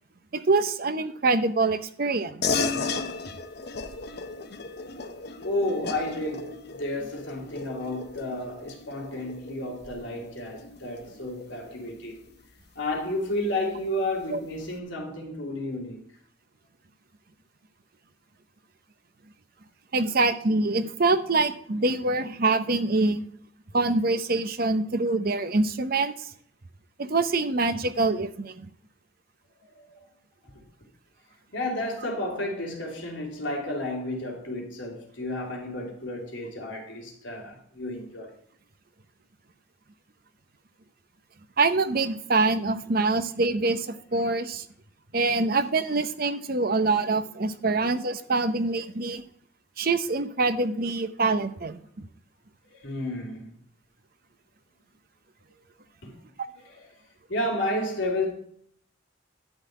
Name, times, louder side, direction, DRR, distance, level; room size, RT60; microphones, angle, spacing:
voice 1, 0.3-2.7 14.3-14.4 19.9-23.2 23.7-26.3 27.0-28.7 41.6-44.7 45.1-49.2 49.8-51.8, right 3 dB, 50° right, 0.8 m, -25 dB
sound 1, 2.4-12.3, left 4 dB, 60° left, 0.9 m, -35 dB
voice 2, 5.4-12.2 12.7-16.1 29.7-30.0 30.4-30.5 31.5-38.3 52.7-53.5 56.0-56.1 57.3-58.3, left 1 dB, 75° left, 3.0 m, -32 dB
12.0 x 4.1 x 8.0 m
head